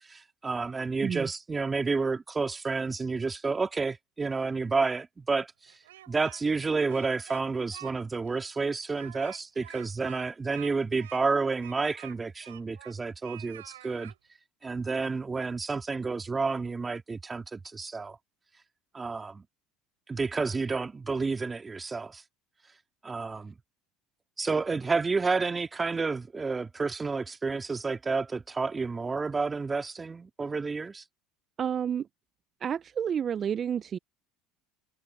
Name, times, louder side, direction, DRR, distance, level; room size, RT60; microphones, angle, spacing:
voice 1, 0.1-5.5 6.1-14.1 14.6-18.2 18.9-19.4 20.1-22.2 23.0-23.5 24.4-31.0, right 4 dB, 20° right, 2.4 m, -30 dB
Speech, 5.7-6.6 6.9-7.9 8.3-8.4 8.9-13.0 13.2-14.2, right 14 dB, 90° right, 4.1 m, -48 dB
voice 2, 31.6-32.1 32.6-34.0, right 8 dB, 40° right, 0.6 m, -30 dB
hypercardioid pair, 80°, 0 cm